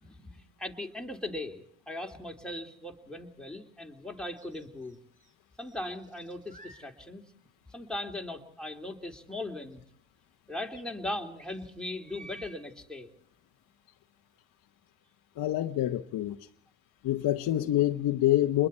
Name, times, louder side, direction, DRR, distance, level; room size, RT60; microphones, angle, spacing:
voice 1, 0.0-5.0 5.6-7.2 7.7-9.8 10.5-13.1, left 1 dB, ahead, 2 dB, 2.9 m, -39 dB
sound 1, 4.4-5.3 5.6-6.9 7.4-7.5 9.7-9.8 10.0-10.1 10.7-10.8 11.4-12.6, right 2 dB, 20° right, 4.6 m, -52 dB
voice 2, 15.4-16.5 17.0-18.7, left 14 dB, 55° left, 5 dB, 1.0 m, -26 dB
28.0 x 21.5 x 4.4 m, 0.65 s
supercardioid pair, 70°, 40 cm